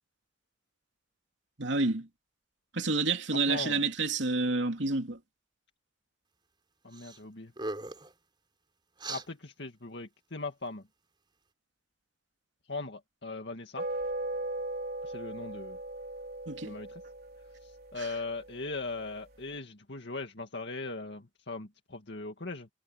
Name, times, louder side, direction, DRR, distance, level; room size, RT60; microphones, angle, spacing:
voice 1, 1.6-2.1 2.7-5.2 16.5-16.7 18.0-18.1, right 3 dB, 80° right, 2.9 m, -29 dB
voice 2, 3.3-3.8 6.8-7.5 9.1-10.8 12.7-13.9 15.0-15.8 16.6-17.0 17.6-22.7, left 3 dB, 65° left, 2.2 m, -39 dB
sound 1, 6.9-7.2 7.5-8.1 9.0-9.3, right 2 dB, 25° right, 4.2 m, -38 dB
sound 2, 13.8-19.3, right 2 dB, 55° right, 4.9 m, -39 dB
head